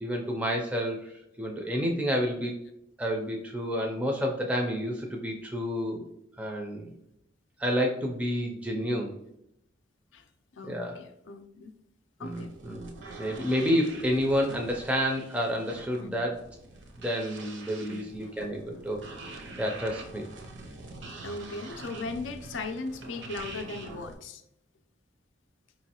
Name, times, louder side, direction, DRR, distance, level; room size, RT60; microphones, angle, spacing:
voice 1, 0.0-2.6 3.0-6.1 6.4-6.9 7.6-9.1 10.6-11.0 12.2-12.9 13.2-16.4 17.0-20.3, equal, 5° right, 1 dB, 0.4 m, -30 dB
voice 2, 10.6-11.7 12.2-12.5 16.0-16.2 17.9-18.3 21.2-24.4, left 3 dB, 75° left, 7 dB, 0.4 m, -38 dB
sound 1, 12.3-24.1, right 2 dB, 70° right, 0.6 m, -45 dB
4.5 x 3.1 x 2.8 m, 0.79 s
head